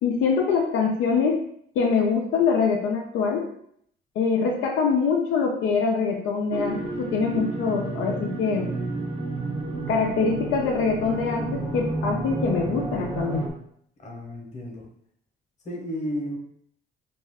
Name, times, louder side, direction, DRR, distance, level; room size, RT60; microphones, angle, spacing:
voice 1, 0.0-1.4 1.8-3.4 4.2-8.7 9.9-13.4, left 5 dB, 90° left, 0 dB, 0.5 m, -24 dB
sound 1, 6.5-13.5, right 2 dB, 30° right, 0.6 m, -31 dB
voice 2, 14.0-14.9 15.6-16.4, equal, 35° left, 0 dB, 0.9 m, -33 dB
2.4 x 2.2 x 3.4 m, 0.67 s
cardioid pair, 90°, 20 cm